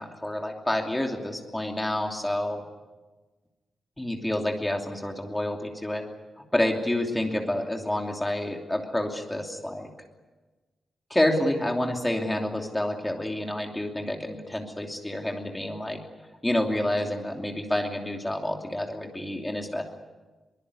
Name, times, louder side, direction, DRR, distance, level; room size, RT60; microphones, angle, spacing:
voice 1, 0.0-2.6 4.0-6.0 6.5-9.9 11.1-16.0 16.4-19.8, left 1 dB, 10° left, 2 dB, 2.8 m, -28 dB
23.5 x 20.5 x 9.8 m, 1.2 s
wide cardioid pair, 170°, 0 cm